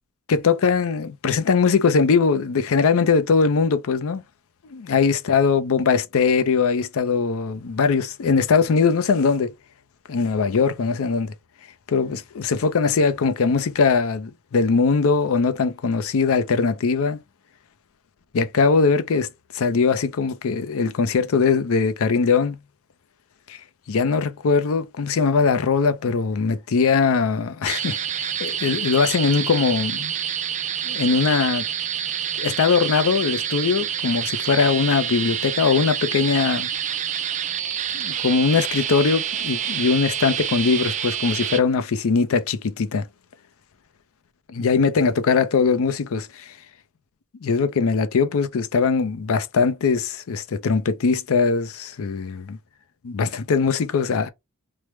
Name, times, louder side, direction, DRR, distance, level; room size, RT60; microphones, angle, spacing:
voice 1, 0.3-4.2 4.6-9.5 10.1-11.3 11.9-17.2 18.3-19.3 19.5-22.6 23.5-23.6 23.9-30.1 30.9-31.6 32.4-36.7 37.9-43.0 44.5-46.5 47.4-52.6 53.0-54.3, left 5 dB, 65° left, 0.5 m, -21 dB
sound 1, 27.7-41.6, right 9 dB, 35° right, 0.3 m, -27 dB
3.2 x 2.0 x 3.1 m
head